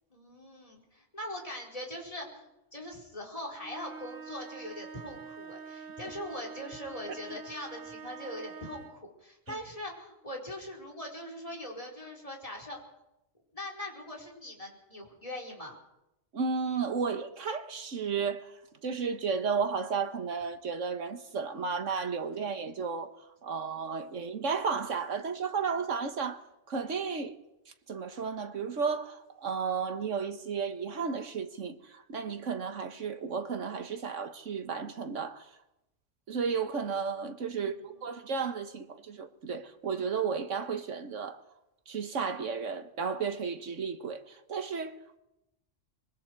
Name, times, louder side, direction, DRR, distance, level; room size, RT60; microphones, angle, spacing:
voice 1, 0.1-12.8 13.5-15.8 37.5-38.1, left 1 dB, 30° left, 4.9 m, -42 dB
sound 1, 3.6-9.1, right 5 dB, 50° right, 1.0 m, -46 dB
voice 2, 16.3-18.5 18.8-23.1 23.4-26.4 26.7-27.4 27.9-35.5 36.3-41.4 41.9-45.2, right 5 dB, 80° right, 1.8 m, -33 dB
24.5 x 23.0 x 4.8 m
omnidirectional pair, 1.3 m